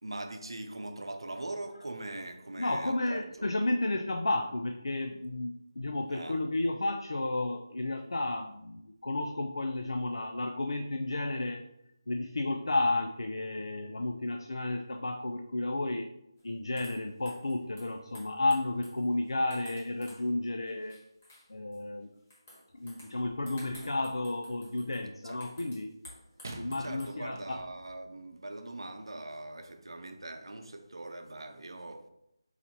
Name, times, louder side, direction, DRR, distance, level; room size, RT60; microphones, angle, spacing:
voice 1, 0.0-3.5 6.1-6.4 25.2-25.5 26.5-32.1, right 2 dB, 90° right, 0.6 m, -42 dB
voice 2, 2.6-11.6 12.1-16.1 16.4-21.0 21.5-22.1 22.8-25.9 26.6-27.6, left 2 dB, 75° left, 0.4 m, -32 dB
sound 1, 16.4-16.5 16.8-20.3 20.7-21.8 22.3-27.1, left 1 dB, 25° left, 1.3 m, -54 dB
sound 2, 23.4-24.0 26.4-28.0 28.8-28.9, right 2 dB, 40° right, 0.5 m, -48 dB
4.0 x 2.8 x 4.4 m
figure-of-eight pair, 175°, 2 cm